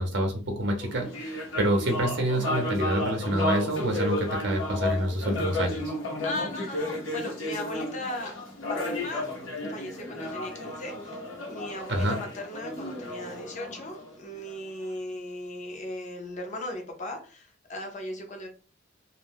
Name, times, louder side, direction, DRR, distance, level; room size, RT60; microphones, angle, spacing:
voice 1, 0.0-5.8 11.9-12.2, right 1 dB, 60° right, 3 dB, 0.7 m, -27 dB
sound 1, 0.8-14.5, left 1 dB, 85° left, 0.9 m, -33 dB
voice 2, 6.2-8.3 8.7-9.3 9.7-11.2 11.5-18.5, left 1 dB, 40° left, 3 dB, 0.7 m, -37 dB
2.4 x 2.2 x 3.4 m, 0.36 s
head